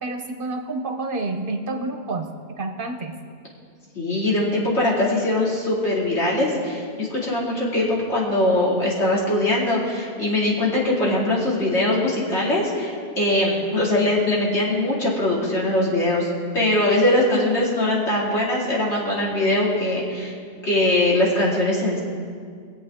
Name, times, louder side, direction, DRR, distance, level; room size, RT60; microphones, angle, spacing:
voice 1, 0.0-2.3 2.6-3.2, right 2 dB, 50° right, 5 dB, 1.0 m, -29 dB
voice 2, 3.9-20.3 20.6-22.0, left 1 dB, 75° left, -5 dB, 2.9 m, -21 dB
21.0 x 8.1 x 3.6 m, 2.1 s
omnidirectional pair, 1.2 m